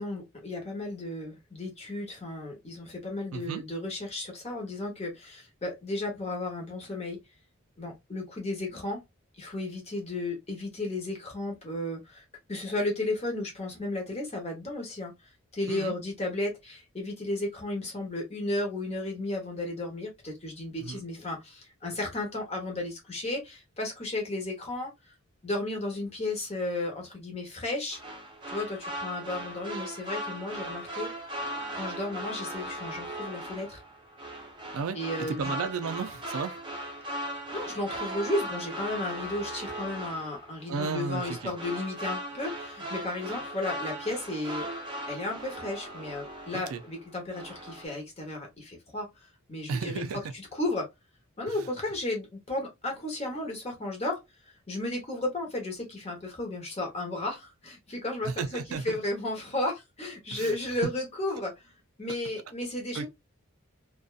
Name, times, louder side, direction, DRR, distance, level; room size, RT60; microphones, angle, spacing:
voice 1, 0.0-7.2 7.8-9.0 9.4-15.1 15.5-25.1 25.4-28.0 28.5-31.1 31.7-33.8 34.9-35.5 37.5-44.7 45.0-50.1 50.6-50.9 51.4-54.2 54.7-61.5 62.0-63.1, left 2 dB, 30° left, 0.9 m, -34 dB
voice 2, 3.3-3.6 15.7-16.0 20.8-21.0 34.7-35.0 35.3-36.6 40.7-41.5 46.5-46.8 49.7-50.3 51.5-51.7 58.2-59.0 60.3-60.8 62.9-63.1, right 5 dB, 80° right, 0.4 m, -34 dB
sound 1, 27.9-47.0 47.3-47.8, right 1 dB, 20° right, 0.7 m, -38 dB
2.5 x 2.2 x 2.3 m
head